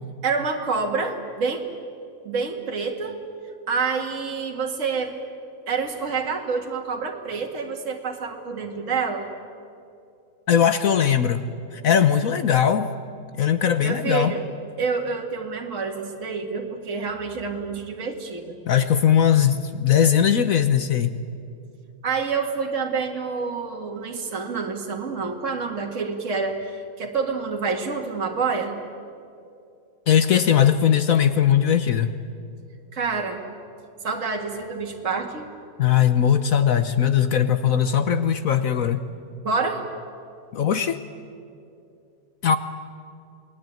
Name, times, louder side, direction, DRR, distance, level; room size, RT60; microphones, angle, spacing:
voice 1, 0.2-1.7 2.2-3.2 3.7-5.1 5.7-9.3 13.8-14.4 14.8-18.6 22.0-28.8 32.9-33.4 34.0-35.5 39.4-39.9, right 4 dB, 55° right, 1 dB, 2.3 m, -27 dB
voice 2, 10.5-11.4 11.7-12.9 13.4-14.3 18.6-21.1 30.1-32.1 35.8-39.0 40.5-41.0 42.4-42.6, left 8 dB, 65° left, 10 dB, 1.3 m, -19 dB
28.5 x 20.0 x 9.3 m, 2.5 s
omnidirectional pair, 1.6 m